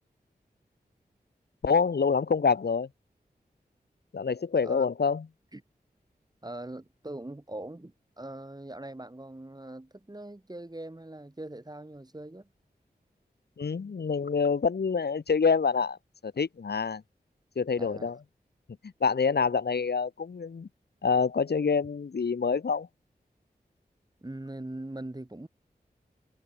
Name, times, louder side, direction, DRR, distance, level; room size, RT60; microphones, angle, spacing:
voice 1, 1.6-2.9 4.1-5.3 13.6-16.0 16.2-17.0 17.6-18.2 19.0-20.7 21.0-22.9, left 5 dB, 80° left, 1.8 m, -26 dB
voice 2, 6.4-12.5 17.7-18.1 24.2-25.5, right 1 dB, 25° right, 4.5 m, -41 dB
cardioid pair, 45°, 17 cm